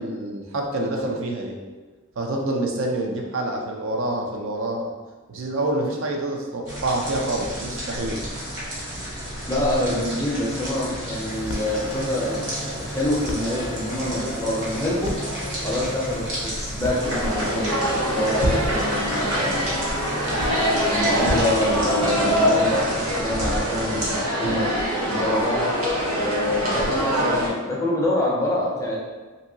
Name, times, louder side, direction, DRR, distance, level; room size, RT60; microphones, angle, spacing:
voice 1, 0.0-1.6 2.2-4.9 5.3-8.2 26.8-27.1, right 1 dB, 70° right, 1 dB, 0.4 m, -27 dB
sound 1, 6.7-24.2, right 1 dB, 55° right, 1.0 m, -32 dB
voice 2, 9.5-15.1 15.6-17.8 18.1-19.7 20.9-24.7 25.1-25.6 26.2-29.0, left 1 dB, 15° left, -4 dB, 0.4 m, -26 dB
sound 2, 11.3-22.2, left 1 dB, 70° left, 0.4 m, -36 dB
sound 3, 17.0-27.5, equal, 90° right, 0.8 m, -24 dB
2.8 x 2.7 x 2.7 m, 1.3 s
head